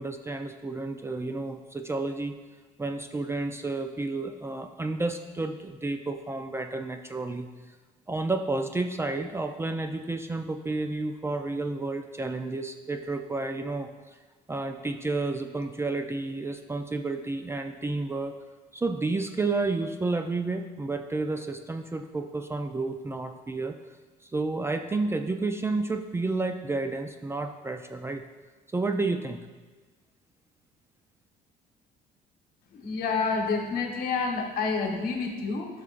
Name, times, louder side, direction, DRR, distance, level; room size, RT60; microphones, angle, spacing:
voice 1, 0.0-2.4 2.8-7.5 8.1-13.9 14.5-18.4 18.7-23.8 24.2-28.3 28.7-29.4, right 3 dB, 15° right, 6 dB, 0.4 m, -31 dB
voice 2, 32.7-35.7, left 4 dB, 60° left, 2 dB, 1.3 m, -28 dB
10.5 x 6.3 x 2.5 m, 1.3 s
cardioid pair, 110°, 17 cm